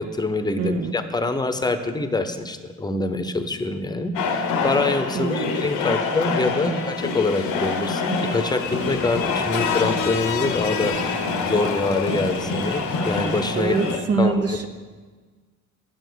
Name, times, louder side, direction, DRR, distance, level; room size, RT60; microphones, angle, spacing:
voice 1, 0.0-10.9 11.4-14.7, left 3 dB, 15° left, 9 dB, 0.8 m, -25 dB
voice 2, 0.6-0.9 5.1-5.6 6.7-6.9 13.6-14.7, right 4 dB, 50° right, 5 dB, 0.8 m, -24 dB
sound 1, 4.1-14.0, left 4 dB, 85° left, 1.0 m, -26 dB
sound 2, 8.6-13.8, right 1 dB, 20° right, 1.2 m, -39 dB
8.9 x 7.1 x 6.3 m, 1.4 s
cardioid pair, 90°, 30 cm